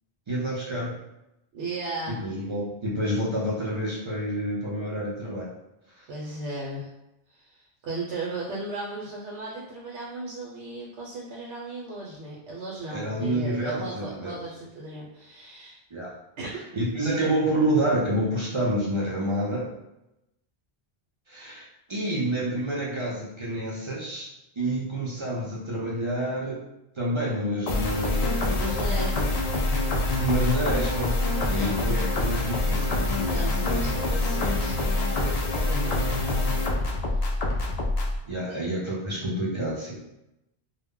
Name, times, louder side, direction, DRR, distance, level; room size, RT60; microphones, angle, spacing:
voice 1, 0.3-1.0 2.1-5.5 6.0-6.1 12.9-14.4 15.9-16.2 16.7-19.7 21.3-24.3 24.6-26.6 27.0-28.4 28.9-29.0 30.2-33.0 38.3-40.0, right 1 dB, 45° right, -5 dB, 0.4 m, -28 dB
voice 2, 1.5-2.2 6.1-6.9 7.3-15.8 16.4-16.6 25.2-25.3 28.5-29.4 31.5-31.8 33.2-37.3 38.5-38.6, right 2 dB, 90° right, -4 dB, 0.9 m, -37 dB
sound 1, 27.7-38.2, left 2 dB, 60° left, 0.4 m, -25 dB
2.1 x 2.0 x 3.6 m, 0.92 s
omnidirectional pair, 1.1 m